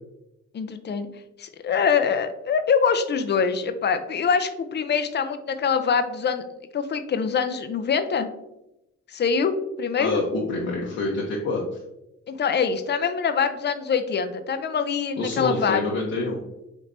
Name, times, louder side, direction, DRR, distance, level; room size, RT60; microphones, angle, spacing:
voice 1, 0.5-1.1 1.4-6.4 6.7-8.3 9.1-10.2 12.3-15.8, left 6 dB, 35° left, 9 dB, 0.5 m, -24 dB
voice 2, 10.0-11.6 15.2-16.4, left 2 dB, 55° left, -3 dB, 0.9 m, -26 dB
5.2 x 3.1 x 2.6 m, 0.90 s
cardioid pair, 90°, 30 cm